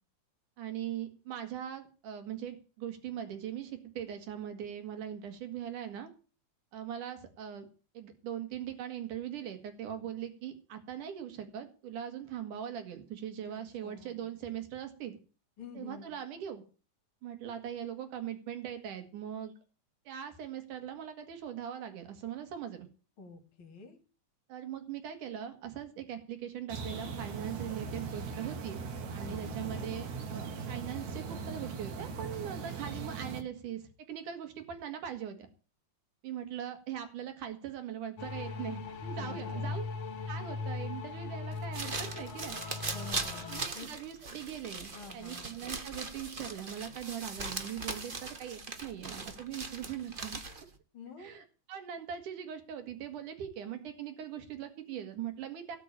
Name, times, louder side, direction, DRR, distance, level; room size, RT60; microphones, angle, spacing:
voice 1, 0.6-6.1 6.7-7.7 8.0-15.2 15.8-16.6 17.2-19.5 20.1-22.9 24.5-28.8 29.1-35.4 36.2-39.9 40.3-42.6 43.5-50.4 51.2-55.8, right 9 dB, 90° right, 7 dB, 3.5 m, -41 dB
voice 2, 13.5-14.3 15.6-16.1 23.2-24.0 29.2-29.9 39.2-39.7 42.9-43.9 44.9-45.5 50.9-51.4, left 4 dB, 40° left, 4 dB, 3.4 m, -49 dB
sound 1, 26.7-33.4, right 5 dB, 70° right, 3.2 m, -39 dB
sound 2, 38.2-43.6, left 4 dB, 60° left, 2.7 m, -39 dB
sound 3, 41.5-50.7, right 3 dB, 50° right, 0.6 m, -40 dB
18.0 x 6.1 x 8.7 m, 0.36 s
omnidirectional pair, 3.5 m